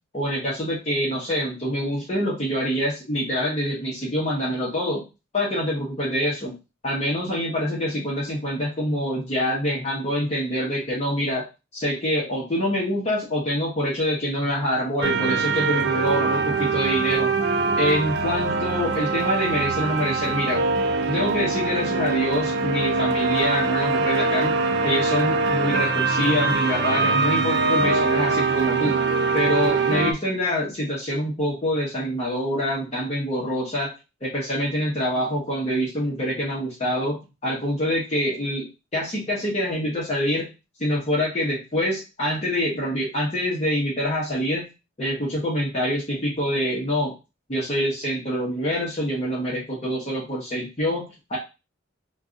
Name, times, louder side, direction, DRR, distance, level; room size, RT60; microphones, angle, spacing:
voice 1, 0.1-5.0 5.3-6.6 6.8-11.4 11.7-17.3 17.8-20.7 21.1-24.6 24.8-29.0 29.3-33.9 34.2-40.5 40.8-44.7 45.0-47.1 47.5-51.4, equal, 30° left, -5 dB, 0.8 m, -25 dB
sound 1, 15.0-30.1, right 4 dB, 55° right, 0.4 m, -23 dB
2.6 x 2.3 x 3.6 m, 0.28 s
head